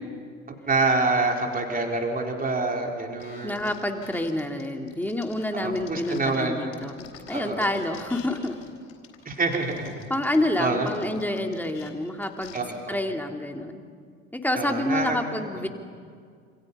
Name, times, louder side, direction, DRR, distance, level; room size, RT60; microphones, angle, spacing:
voice 1, 0.7-3.7 5.5-6.6 7.3-7.7 9.3-10.1 10.6-10.9 12.5-12.9 14.6-15.2 15.6-15.7, right 3 dB, 25° right, 2 dB, 4.1 m, -26 dB
sound 1, 3.2-6.4 6.7-12.6, left 8 dB, 75° left, 4.0 m, -48 dB
voice 2, 3.4-8.6 10.1-12.6 12.9-13.9 14.4-15.7, left 1 dB, 5° left, 4 dB, 2.7 m, -28 dB
28.0 x 28.0 x 5.6 m, 2.1 s
figure-of-eight pair, 60°, 35 cm